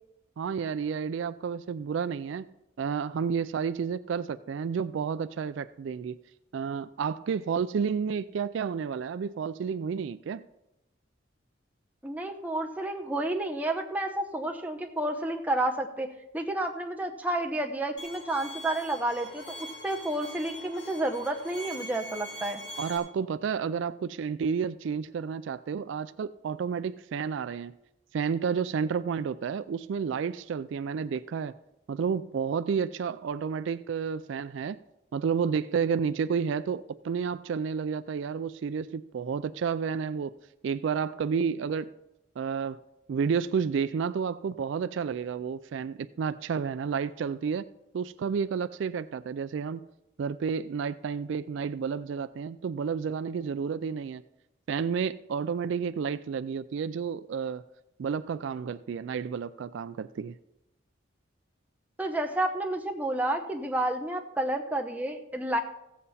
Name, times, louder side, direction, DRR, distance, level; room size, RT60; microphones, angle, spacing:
voice 1, 0.4-2.5 2.8-6.2 6.5-10.4 22.8-27.7 28.1-31.5 31.9-34.8 35.1-40.3 40.6-41.9 42.4-42.8 43.1-47.6 47.9-49.8 50.2-54.2 54.7-57.6 58.0-60.3, right 6 dB, 70° right, 14 dB, 0.3 m, -31 dB
voice 2, 12.0-16.1 16.3-22.6 62.0-65.6, right 1 dB, 10° right, 2 dB, 0.8 m, -30 dB
Bowed string instrument, 18.0-23.0, equal, 55° left, 2.1 m, -43 dB
15.5 x 7.6 x 4.1 m, 0.91 s
head